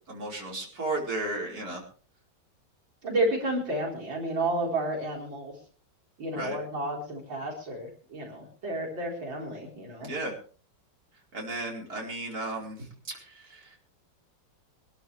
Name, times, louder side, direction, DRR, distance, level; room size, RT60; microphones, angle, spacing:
voice 1, 0.1-1.8 6.3-6.6 10.0-10.4 11.3-12.9 13.1-13.8, right 2 dB, 50° right, -1 dB, 5.2 m, -34 dB
voice 2, 3.0-5.5 6.2-10.1, right 1 dB, 75° right, -1 dB, 5.0 m, -31 dB
24.0 x 13.0 x 3.4 m, 0.41 s
omnidirectional pair, 2.1 m